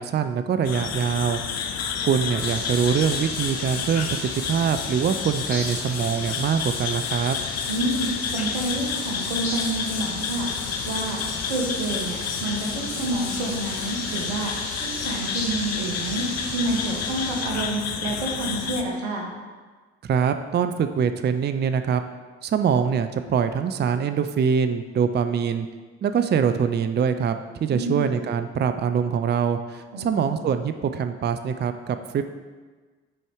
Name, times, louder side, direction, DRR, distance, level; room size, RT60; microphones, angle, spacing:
voice 1, 0.0-1.4 2.0-7.4 20.1-22.0 22.4-25.7 26.0-32.2, right 7 dB, 35° right, 9 dB, 0.5 m, -24 dB
sound 1, 0.6-18.8, left 7 dB, 55° left, 0.7 m, -30 dB
sound 2, 2.4-17.4, left 1 dB, 80° left, 2.2 m, -35 dB
voice 2, 7.7-10.5 10.8-11.2 11.5-14.5 14.8-19.3 27.7-28.1 29.9-30.4, right 2 dB, 90° right, 0 dB, 1.1 m, -28 dB
6.3 x 4.5 x 4.8 m, 1.4 s
hypercardioid pair, 50°, 31 cm